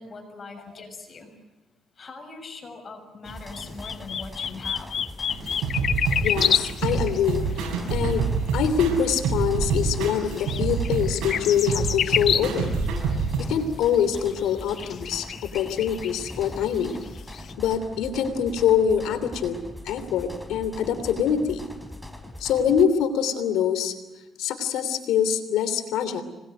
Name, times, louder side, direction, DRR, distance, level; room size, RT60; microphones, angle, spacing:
voice 1, 0.0-1.3 2.0-5.0, left 3 dB, 40° left, 6 dB, 6.7 m, -41 dB
sound 1, 3.2-22.8, left 1 dB, 5° left, 3.7 m, -41 dB
sound 2, 3.3-7.7 8.1-8.2 8.8-8.9 9.7-12.9 13.1-13.2 13.9-17.5, left 8 dB, 60° left, 1.1 m, -29 dB
sound 3, 5.3-13.4, right 5 dB, 85° right, 7.6 m, -27 dB
voice 2, 6.2-12.7 13.4-17.0 17.6-19.6 19.8-21.6 22.4-23.9 24.4-26.2, left 8 dB, 90° left, 11 dB, 3.1 m, -24 dB
26.5 x 21.0 x 9.2 m, 1.1 s
cardioid pair, 90°, 0 cm